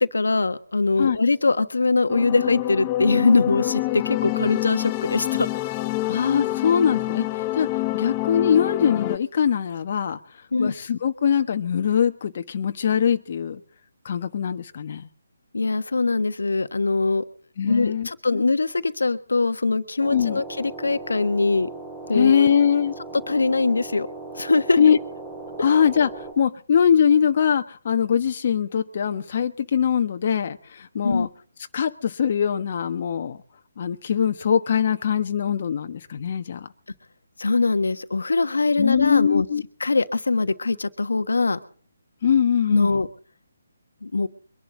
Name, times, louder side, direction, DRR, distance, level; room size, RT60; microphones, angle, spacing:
voice 1, 0.0-5.5 10.5-10.7 15.5-17.2 17.6-21.7 22.1-22.5 23.3-24.1 24.3-25.0 31.0-31.3 37.4-39.5 39.8-41.6 42.7-43.1 44.0-44.3, left 3 dB, 75° left, 10 dB, 1.3 m, -22 dB
sound 1, 2.1-9.2, left 18 dB, 25° left, 0.6 m, -27 dB
voice 2, 6.1-10.2 10.6-13.6 14.0-15.1 17.6-18.5 20.1-20.4 22.1-22.9 24.8-25.0 25.6-31.3 31.7-33.4 33.8-36.7 38.8-39.6 42.2-43.0, left 8 dB, 45° left, 7 dB, 1.2 m, -22 dB
sound 2, 20.0-26.3, right 2 dB, 15° right, 5.8 m, -38 dB
24.0 x 11.5 x 3.9 m, 0.43 s
figure-of-eight pair, 150°, 0 cm